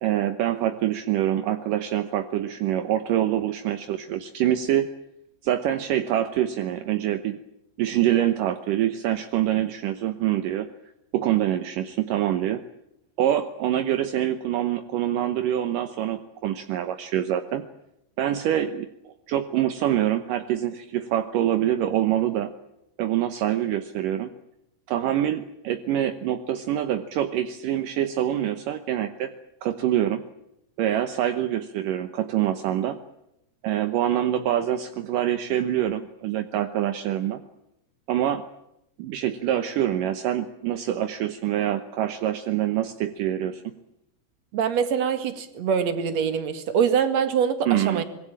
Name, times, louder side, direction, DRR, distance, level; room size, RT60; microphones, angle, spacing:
voice 1, 0.0-4.9 5.4-7.4 7.8-10.7 11.1-12.6 13.2-17.6 18.2-18.9 19.3-22.5 23.0-24.3 24.9-29.3 29.6-30.2 30.8-33.0 33.6-37.4 38.1-38.4 39.0-43.6 47.7-48.0, right 11 dB, 70° right, 9 dB, 2.1 m, -25 dB
voice 2, 44.5-48.0, right 7 dB, 45° right, 10 dB, 2.6 m, -24 dB
26.0 x 21.5 x 8.7 m, 0.80 s
omnidirectional pair, 5.1 m